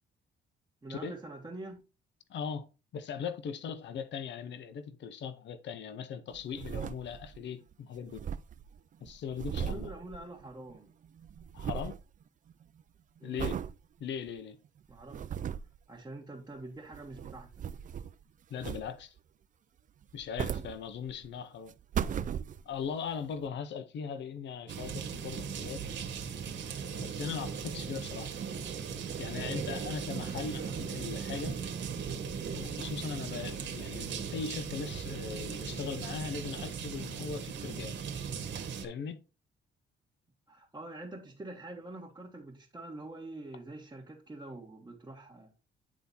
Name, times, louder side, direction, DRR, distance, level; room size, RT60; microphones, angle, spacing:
voice 1, 0.8-1.8 9.5-10.9 13.2-13.5 14.9-15.3 15.9-17.5 30.1-30.4 40.5-45.5, right 2 dB, 20° right, 1.7 m, -45 dB
voice 2, 2.3-2.7 2.9-8.2 9.0-9.9 11.5-11.9 13.2-13.6 14.0-14.6 18.5-19.1 20.1-21.7 22.7-26.0 27.0-28.3 29.2-31.6 32.2-32.3 32.5-38.0 38.8-39.2, left 6 dB, 65° left, 0.8 m, -39 dB
sound 1, 6.3-7.5 7.7-7.8 8.0-10.8 11.0-12.0 12.5-12.8 13.4-13.7 14.3-14.4 14.9-15.8 16.8-18.2 18.6-19.2 20.0-21.3 21.7-22.9 23.5-23.6, right 8 dB, 40° right, 0.4 m, -37 dB
sound 2, 24.7-38.8, right 6 dB, 65° right, 1.5 m, -38 dB
9.7 x 3.6 x 4.2 m
cardioid pair, 90°, 20 cm